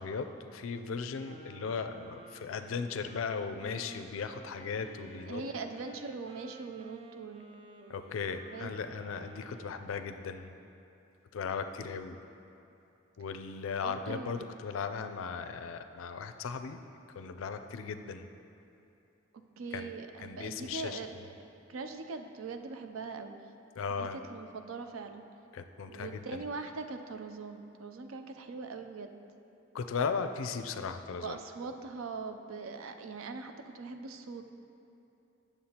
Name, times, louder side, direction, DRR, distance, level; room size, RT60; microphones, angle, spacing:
voice 1, 0.0-5.4 7.9-10.5 11.3-12.2 13.2-16.8 17.2-18.3 19.7-19.9 20.2-21.0 23.8-24.2 25.5-26.4 29.7-31.4, left 5 dB, 85° left, 8 dB, 0.4 m, -37 dB
Wind instrument woodwind instrument, 1.2-9.8, right 3 dB, 30° right, 0.4 m, -53 dB
voice 2, 5.3-7.5 8.5-8.9 13.8-14.6 19.6-21.2 21.7-23.4 23.9-25.2 25.9-29.1 31.2-34.4, right 4 dB, 90° right, 7 dB, 0.5 m, -41 dB
9.4 x 6.9 x 2.8 m, 2.8 s
head